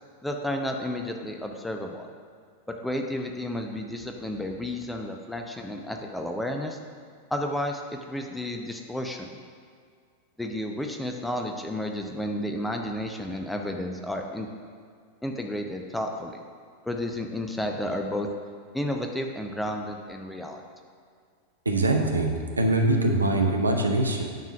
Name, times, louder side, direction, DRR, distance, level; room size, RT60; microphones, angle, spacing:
voice 1, 0.2-2.1 2.7-6.8 7.3-7.8 8.1-9.3 10.4-14.5 15.2-16.3 16.9-18.3 18.7-20.6, left 1 dB, 5° left, 3 dB, 0.8 m, -32 dB
voice 2, 21.6-24.2, right 2 dB, 80° right, 3 dB, 0.9 m, -23 dB
9.3 x 4.7 x 5.9 m, 2.1 s
figure-of-eight pair, 90°, 0 cm